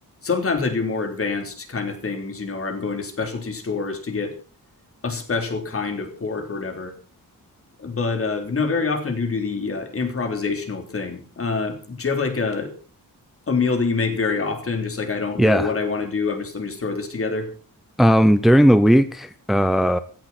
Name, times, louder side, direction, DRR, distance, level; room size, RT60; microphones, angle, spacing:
voice 1, 0.2-4.4 5.0-7.0 7.8-12.7 13.5-17.5, left 4 dB, 40° left, 5 dB, 3.6 m, -26 dB
voice 2, 15.4-15.7 18.0-20.0, equal, ahead, 12 dB, 0.7 m, -16 dB
16.0 x 16.0 x 4.4 m, 0.39 s
wide cardioid pair, 170°, 35 cm